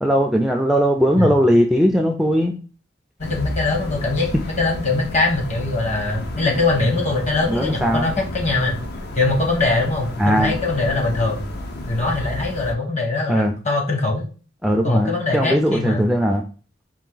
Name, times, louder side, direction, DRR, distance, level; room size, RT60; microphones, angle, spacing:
voice 1, 0.0-2.6 7.5-8.1 10.2-10.6 13.3-13.5 14.6-16.4, equal, ahead, 3 dB, 0.3 m, -18 dB
sound 1, 3.2-12.7, left 1 dB, 60° left, 0.8 m, -31 dB
voice 2, 3.2-4.3 4.6-8.8 9.1-11.4 11.9-14.3 14.8-16.1, left 3 dB, 40° left, 1 dB, 1.3 m, -22 dB
4.7 x 2.6 x 3.8 m, 0.37 s
head